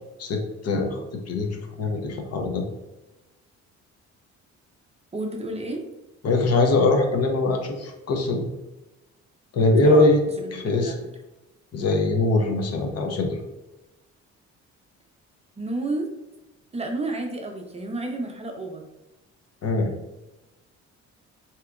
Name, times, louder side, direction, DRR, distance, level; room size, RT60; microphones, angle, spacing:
voice 1, 0.2-1.0 1.3-1.5 1.8-2.6 6.2-8.4 9.5-10.2 10.5-10.9 11.7-13.4 19.6-19.9, left 2 dB, 55° left, 3 dB, 0.7 m, -22 dB
voice 2, 5.1-5.8 9.8-10.1 10.4-11.0 15.6-16.1 16.7-18.9, right 2 dB, 20° right, 2 dB, 0.5 m, -31 dB
3.3 x 2.9 x 2.4 m, 0.98 s
cardioid pair, 90°, 30 cm